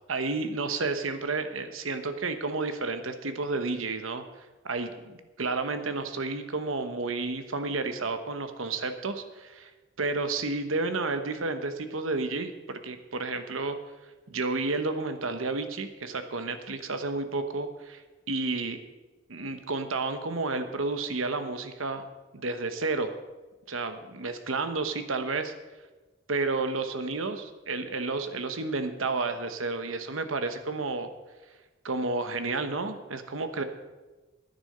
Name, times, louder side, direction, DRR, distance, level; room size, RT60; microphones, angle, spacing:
voice 1, 0.1-4.2 4.6-9.7 10.0-13.8 14.3-18.0 18.3-18.8 19.3-22.0 22.3-23.1 23.7-25.5 26.3-31.1 31.8-33.6, right 3 dB, 90° right, 9 dB, 1.1 m, -31 dB
10.5 x 9.7 x 6.6 m, 1.2 s
head